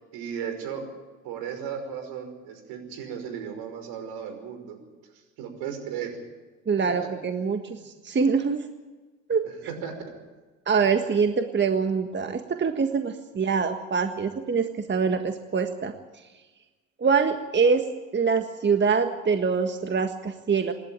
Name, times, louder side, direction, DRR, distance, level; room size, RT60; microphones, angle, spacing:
voice 1, 0.1-0.9 1.2-4.8 5.4-6.2 9.4-9.9, right 7 dB, 70° right, 6 dB, 5.5 m, -35 dB
voice 2, 6.7-8.7 9.3-9.5 10.7-15.9 17.0-17.8 18.1-20.7, right 5 dB, 30° right, 7 dB, 1.6 m, -24 dB
27.0 x 12.0 x 9.0 m, 1.3 s
hypercardioid pair, 65°, 39 cm